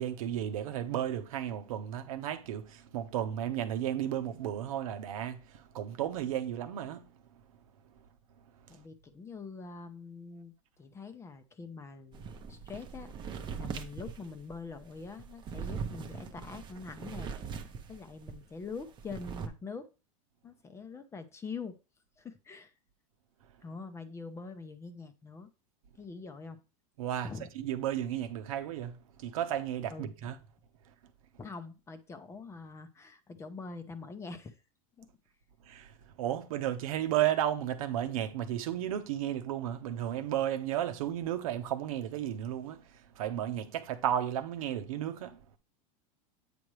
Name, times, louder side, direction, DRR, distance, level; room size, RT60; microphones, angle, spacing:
voice 1, 0.0-7.1 27.0-27.3 27.5-30.4 35.7-45.4, right 11 dB, 80° right, 1.0 m, -33 dB
voice 2, 8.7-13.1 13.5-19.9 20.4-21.8 22.2-22.7 23.6-25.5 26.0-26.6 27.2-27.5 29.9-30.1 31.4-34.6 35.0-35.1, left 4 dB, 15° left, 0.6 m, -44 dB
sound 1, 12.1-18.4 18.7-19.5, right 6 dB, 25° right, 0.8 m, -41 dB
8.6 x 5.1 x 3.1 m
supercardioid pair, 140°, 18 cm